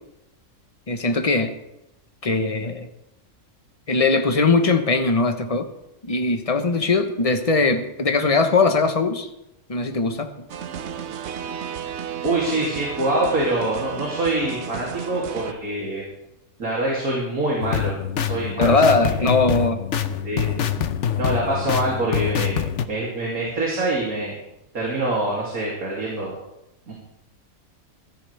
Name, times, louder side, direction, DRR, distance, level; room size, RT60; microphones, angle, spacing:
voice 1, 0.9-1.5 2.2-2.9 3.9-5.7 6.0-9.3 9.7-10.3 18.6-19.8, left 3 dB, 25° left, 6 dB, 1.1 m, -20 dB
sound 1, 10.5-15.5, right 8 dB, 55° right, 0.9 m, -33 dB
voice 2, 12.2-16.1 16.6-17.9 18.2-19.3 20.2-20.7 21.2-24.4 24.7-26.4 26.9-27.0, right 2 dB, 70° right, -4 dB, 3.4 m, -25 dB
sound 2, 17.6-22.8, left 8 dB, 60° left, 1.0 m, -25 dB
21.0 x 14.0 x 3.5 m, 0.87 s
omnidirectional pair, 1.5 m